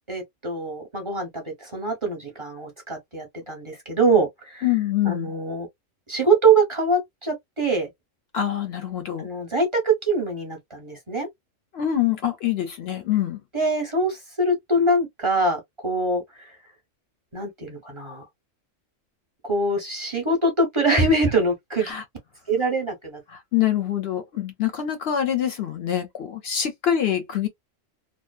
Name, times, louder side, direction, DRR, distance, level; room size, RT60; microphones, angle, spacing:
voice 1, 0.1-4.6 5.0-5.7 6.1-7.9 9.2-11.3 13.5-16.5 17.3-18.3 19.4-21.9 22.5-23.2, right 2 dB, 25° right, 0.8 m, -23 dB
voice 2, 4.6-5.3 8.3-9.3 11.7-13.4 21.9-22.0 23.3-27.5, left 11 dB, 65° left, 0.7 m, -25 dB
2.6 x 2.0 x 2.3 m
omnidirectional pair, 1.4 m